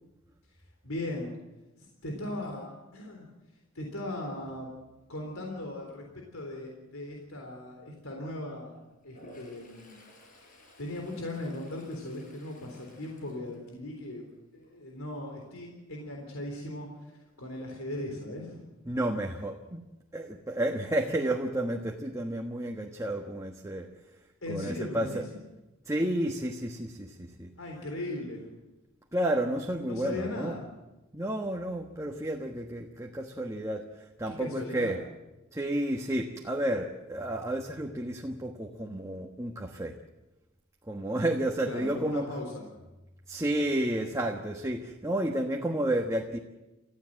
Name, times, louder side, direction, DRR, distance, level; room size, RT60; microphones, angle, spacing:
voice 1, 0.8-1.4 1.8-3.3 3.7-4.7 5.1-8.8 9.0-10.0 10.4-16.9 17.4-18.6 24.4-25.3 27.6-28.5 29.9-30.6 34.3-35.0 41.6-42.6, left 1 dB, 90° left, 1 dB, 3.8 m, -38 dB
Toilet flush, 9.0-14.2 14.6-15.0 19.5-19.6 19.8-20.6, left 1 dB, 40° left, 5.5 m, -55 dB
voice 2, 18.9-23.9 24.5-25.2 25.9-27.5 29.1-30.6 31.1-33.8 34.2-35.0 35.5-40.0 40.9-42.2 43.3-46.4, right 1 dB, 15° right, 2 dB, 1.3 m, -31 dB
29.5 x 14.5 x 7.7 m, 1.0 s
head